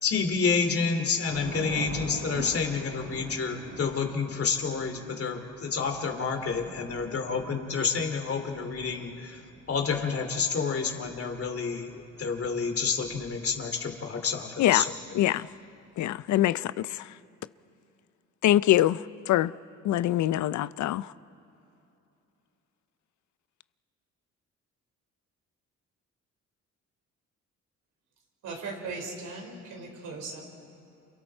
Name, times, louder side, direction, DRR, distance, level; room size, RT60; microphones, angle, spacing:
voice 1, 0.0-9.4 9.7-14.9, left 5 dB, 50° left, 2.7 m, -29 dB
Thunder / Rain, 1.3-13.8, right 3 dB, 60° right, 5.6 m, -43 dB
voice 2, 15.1-15.5 16.0-17.0 18.4-19.0 19.3-19.5 19.8-21.1, left 13 dB, 70° left, 0.5 m, -24 dB
voice 3, 28.4-30.4, right 3 dB, 85° right, 5.0 m, -38 dB
28.5 x 28.5 x 4.4 m
cardioid pair, 90°, 30 cm